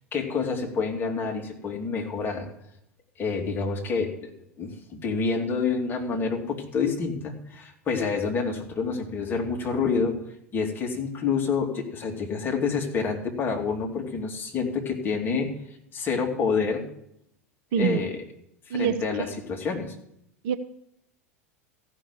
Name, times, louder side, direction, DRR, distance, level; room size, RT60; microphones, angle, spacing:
voice 1, 0.1-2.5 3.2-4.3 4.6-10.2 10.5-15.5 15.9-16.8 17.8-18.2 18.7-19.9, left 5 dB, 25° left, 1 dB, 2.5 m, -28 dB
voice 2, 17.7-18.0 18.7-19.0 20.4-20.6, right 8 dB, 50° right, 10 dB, 0.8 m, -24 dB
14.5 x 6.2 x 8.3 m, 0.75 s
figure-of-eight pair, 85°, 8 cm